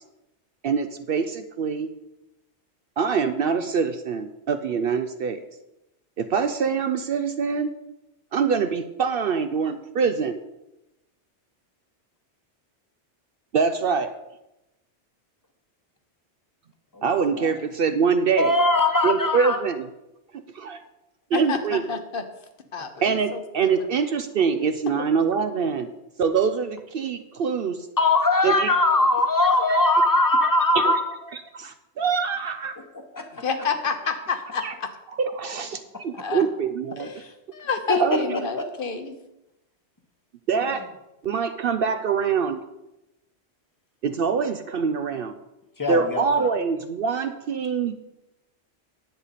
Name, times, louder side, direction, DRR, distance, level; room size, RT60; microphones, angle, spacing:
voice 1, 0.6-1.9 3.0-5.4 6.2-7.7 8.3-10.4 13.5-14.1 17.0-18.5 19.0-19.9 20.3-20.8 21.3-21.8 23.0-25.9 26.2-27.9 28.4-28.7 30.8-30.9 31.5-32.8 34.6-34.7 35.2-37.1 38.0-38.4 40.5-40.9 41.2-42.6 44.0-45.4 45.9-47.9, right 6 dB, 60° right, 9 dB, 0.7 m, -24 dB
voice 2, 18.4-19.6 28.0-31.0 32.8-33.4 37.9-38.7 40.6-40.8 45.8-46.5, left 2 dB, 20° left, 6 dB, 1.0 m, -21 dB
voice 3, 21.3-22.2 22.7-23.9 24.9-25.1 33.4-34.9 36.1-36.5 37.0-37.2 37.5-39.2, left 5 dB, 55° left, 8 dB, 1.0 m, -29 dB
10.5 x 8.1 x 4.1 m, 0.93 s
omnidirectional pair, 1.2 m